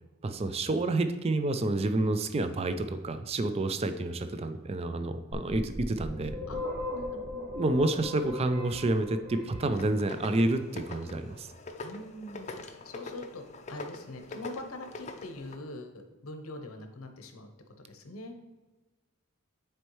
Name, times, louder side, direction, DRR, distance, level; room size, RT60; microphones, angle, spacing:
voice 1, 0.2-6.4 7.5-11.5, right 2 dB, 30° right, 9 dB, 0.3 m, -29 dB
sound 1, 5.3-10.2, left 2 dB, 55° right, 2.1 m, -38 dB
voice 2, 6.5-7.5 11.8-12.5 12.8-13.4 13.7-17.5 17.9-18.3, left 1 dB, 90° left, 6 dB, 0.9 m, -43 dB
sound 2, 9.7-15.6, left 3 dB, 35° left, 0.5 m, -43 dB
9.2 x 4.4 x 3.1 m, 1.2 s
head